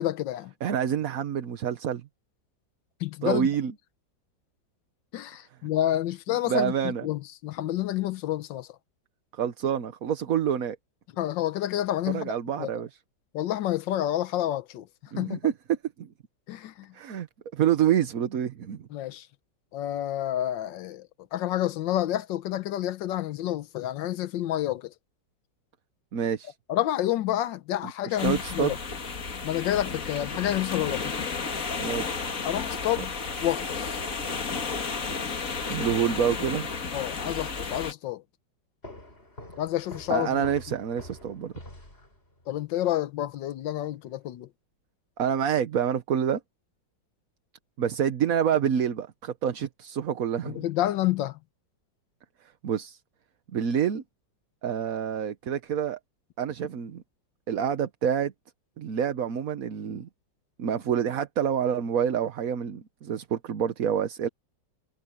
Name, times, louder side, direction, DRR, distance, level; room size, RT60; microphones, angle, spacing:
voice 1, 0.0-0.5 3.0-3.5 5.1-8.7 11.2-12.3 12.6-12.7 13.3-15.4 16.5-16.9 18.9-19.3 19.7-24.9 26.7-28.8 29.4-31.1 32.4-33.1 33.4-34.0 36.9-38.2 39.6-40.5 42.5-44.5 50.4-51.4, left 13 dB, 85° left, 1.5 m, -29 dB
voice 2, 0.6-2.0 3.2-3.7 6.5-7.1 9.3-10.8 12.1-12.9 15.1-16.1 16.9-17.3 17.5-18.9 26.1-26.5 27.8-28.7 31.8-32.2 35.7-36.7 40.1-41.5 45.2-46.4 47.8-50.6 52.6-53.0 53.5-54.0 54.6-56.0 56.4-57.0 57.5-58.3 58.8-60.1 60.6-64.3, right 8 dB, 55° right, 1.3 m, -27 dB
sound 1, 28.2-37.9, left 4 dB, 50° left, 2.1 m, -33 dB
sound 2, 38.8-42.5, left 1 dB, 30° left, 6.8 m, -46 dB
omnidirectional pair, 2.0 m